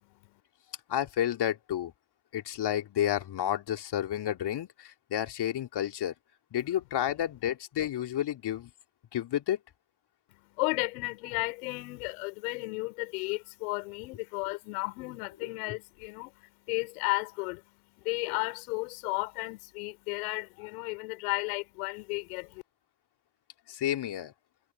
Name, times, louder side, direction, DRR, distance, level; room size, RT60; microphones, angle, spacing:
voice 1, 0.0-0.4 10.6-17.6 18.0-22.6, left 27 dB, 80° left, 5.5 m, -34 dB
voice 2, 0.9-1.9 2.3-6.1 6.5-8.7 9.1-9.6 23.7-24.3, left 11 dB, 60° left, 3.4 m, -31 dB
hypercardioid pair, 45°, 44 cm